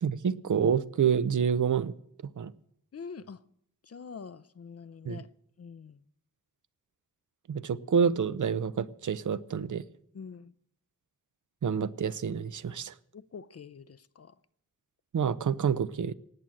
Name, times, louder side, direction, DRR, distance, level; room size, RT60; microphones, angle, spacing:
voice 1, 0.0-1.9 2.4-2.5 5.1-5.2 7.5-9.8 11.6-12.9 15.1-16.1, right 7 dB, 60° right, 0.7 m, -28 dB
voice 2, 2.9-3.4 3.8-5.3 5.6-6.0 10.1-10.5 13.1-14.4, left 5 dB, 45° left, 0.6 m, -45 dB
18.5 x 7.7 x 8.6 m
wide cardioid pair, 90°, 33 cm